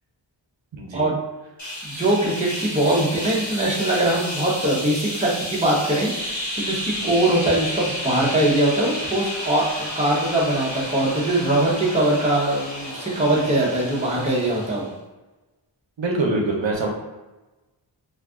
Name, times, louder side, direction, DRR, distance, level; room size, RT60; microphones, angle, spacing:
voice 1, 0.7-1.0 3.9-4.0 7.0-7.1 16.0-16.9, right 2 dB, 65° right, 0 dB, 0.7 m, -25 dB
sound 1, 1.6-14.9, equal, 35° left, 1.2 m, -31 dB
voice 2, 1.8-14.9, right 1 dB, 15° right, -4 dB, 0.7 m, -22 dB
2.5 x 2.3 x 3.5 m, 1.1 s
wide cardioid pair, 55°, 48 cm